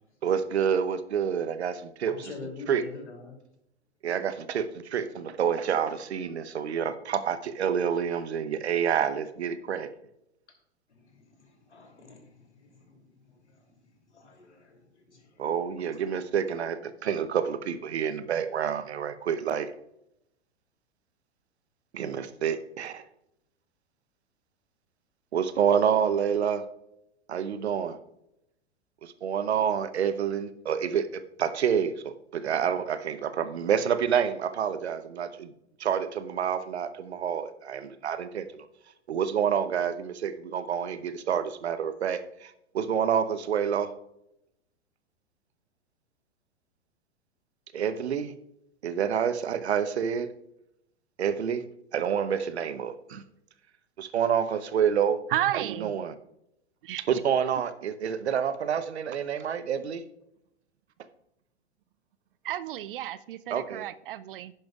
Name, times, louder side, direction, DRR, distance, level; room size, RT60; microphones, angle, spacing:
voice 1, 0.2-2.3 2.7-2.8 4.0-9.9 15.4-19.7 21.9-23.0 25.3-26.6 27.3-28.0 29.0-35.5 35.8-38.7 39.1-43.9 47.7-48.3 48.8-50.3 51.2-51.6 51.9-53.2 54.0-55.2 55.5-56.1 57.1-60.0 63.5-63.8, right 8 dB, 65° right, 13 dB, 0.9 m, -28 dB
voice 2, 2.1-3.4 10.9-13.8 14.1-15.4, left 3 dB, 75° left, 2 dB, 2.9 m, -46 dB
voice 3, 55.3-55.9 56.8-57.0 62.4-64.5, right 12 dB, 50° right, 16 dB, 0.5 m, -32 dB
11.0 x 10.0 x 2.4 m, 0.81 s
figure-of-eight pair, 100°, 35 cm